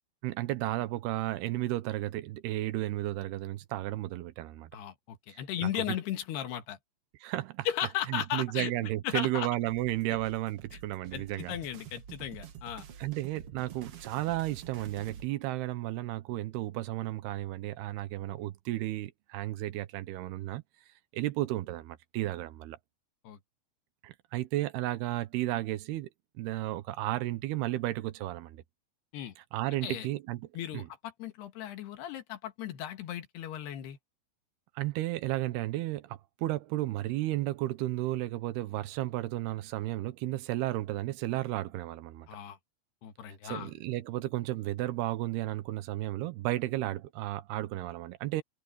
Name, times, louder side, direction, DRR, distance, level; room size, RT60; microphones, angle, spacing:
voice 1, 0.2-4.7 5.3-5.7 7.2-7.7 8.1-11.5 13.0-20.6 21.1-22.8 24.0-26.1 26.4-28.6 29.5-30.5 30.7-30.9 34.8-42.3 43.4-48.4, right 16 dB, 85° right, 3.0 m, -33 dB
voice 2, 4.7-6.8 7.7-8.7 9.0-9.5 11.1-12.9 23.2-23.4 29.1-29.4 29.8-30.1 30.5-34.0 42.3-42.6 43.0-43.7, left 11 dB, 85° left, 3.8 m, -36 dB
sound 1, 9.7-15.3, right 8 dB, 60° right, 1.6 m, -48 dB
omnidirectional pair, 4.5 m